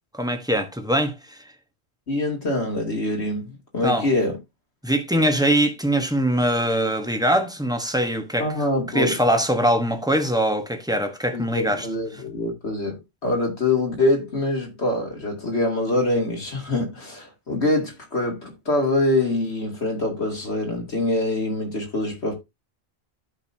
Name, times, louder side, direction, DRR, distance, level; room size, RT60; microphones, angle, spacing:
voice 1, 0.1-1.4 3.8-4.1 4.8-8.5 8.9-11.9, right 1 dB, 5° right, 1.1 m, -22 dB
voice 2, 2.1-4.4 8.4-9.1 11.3-22.3, left 2 dB, 85° left, 2.8 m, -24 dB
13.5 x 5.2 x 2.8 m
omnidirectional pair, 1.1 m